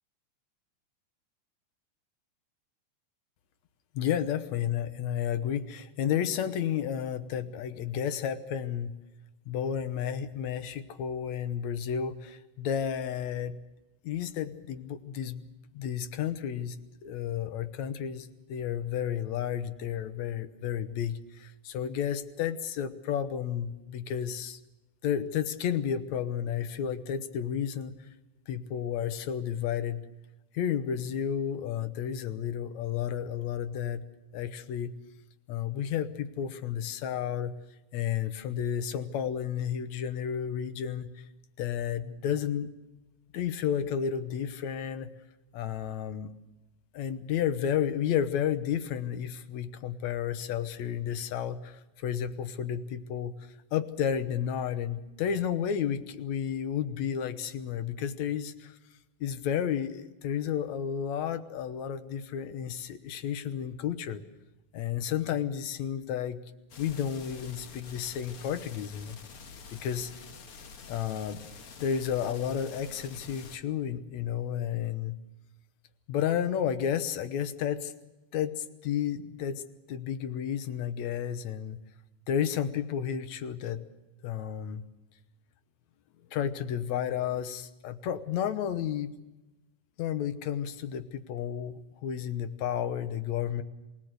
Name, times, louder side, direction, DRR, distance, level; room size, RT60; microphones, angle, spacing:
voice 1, 3.9-8.9 9.5-13.5 14.0-15.4 15.7-16.8 17.0-24.6 25.0-28.0 28.5-30.0 30.5-34.1 34.3-34.9 35.5-37.5 37.9-41.1 41.6-42.7 43.3-45.1 45.5-46.3 46.9-53.3 53.7-58.7 59.2-64.2 64.7-66.4 66.8-69.2 69.7-70.1 70.9-71.4 71.8-75.2 76.1-77.9 78.3-79.6 79.9-81.8 82.3-83.8 84.2-84.8 86.3-89.1 90.0-93.6, left 9 dB, 70° left, 11 dB, 2.2 m, -32 dB
sound 1, 66.7-73.6, left 5 dB, 50° left, 2.0 m, -48 dB
27.5 x 18.5 x 6.6 m, 1.0 s
omnidirectional pair, 3.7 m